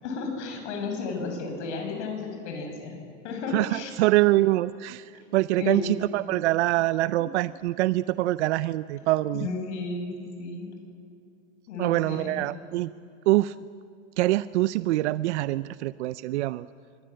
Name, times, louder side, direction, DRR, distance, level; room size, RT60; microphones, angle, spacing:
voice 1, 0.0-3.0 3.2-3.9 5.6-5.9 7.2-7.3 9.3-10.1 10.4-10.7 11.7-12.6, left 4 dB, 65° left, 4 dB, 6.5 m, -33 dB
voice 2, 3.5-9.5 11.8-12.9 13.3-13.5 14.2-16.7, right 17 dB, 65° right, 16 dB, 0.6 m, -24 dB
25.0 x 19.5 x 7.7 m, 2.5 s
supercardioid pair, 160°, 37 cm